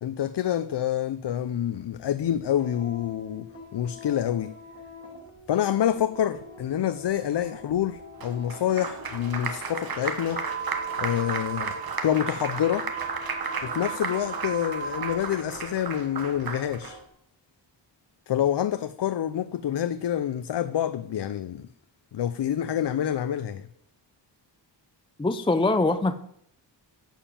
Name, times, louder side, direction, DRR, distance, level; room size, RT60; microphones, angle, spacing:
voice 1, 0.0-3.5 3.7-4.5 5.5-10.4 11.0-12.9 13.6-17.0 18.3-21.7 22.1-23.7, left 10 dB, 70° left, 0.6 m, -27 dB
sound 1, 1.8-17.0, left 3 dB, 35° left, 3.0 m, -46 dB
Applause, 8.2-16.9, right 5 dB, 55° right, 1.3 m, -34 dB
sound 2, 10.3-15.2, right 7 dB, 25° right, 1.4 m, -36 dB
voice 2, 25.2-26.1, left 2 dB, 10° left, 0.4 m, -23 dB
11.5 x 7.3 x 7.4 m
wide cardioid pair, 180°, 44 cm